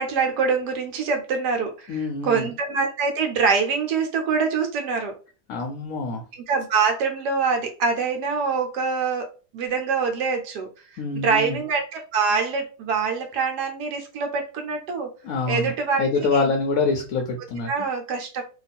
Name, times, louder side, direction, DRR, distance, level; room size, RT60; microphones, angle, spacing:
voice 1, 0.0-5.1 6.3-10.7 11.1-15.1 15.5-16.5 17.7-18.4, right 5 dB, 75° right, 4 dB, 1.2 m, -25 dB
voice 2, 1.9-2.5 5.5-6.2 11.0-11.6 15.2-15.7 16.0-17.7, left 3 dB, 65° left, 3 dB, 1.0 m, -25 dB
3.0 x 2.3 x 4.2 m, 0.35 s
omnidirectional pair, 1.8 m